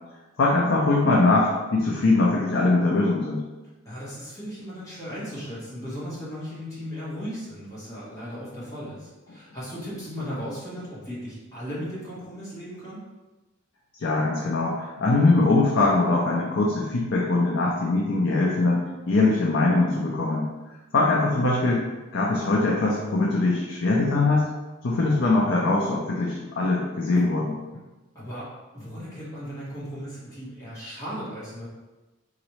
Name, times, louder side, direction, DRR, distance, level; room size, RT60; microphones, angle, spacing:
voice 1, 0.4-3.4 14.0-20.5 20.9-21.8 22.1-24.5 24.8-27.5, left 2 dB, 60° left, -3 dB, 0.5 m, -22 dB
voice 2, 3.8-13.0 23.0-23.3 28.1-28.5 28.7-31.7, equal, 15° left, -10 dB, 1.3 m, -36 dB
4.0 x 2.6 x 3.1 m, 1.2 s
head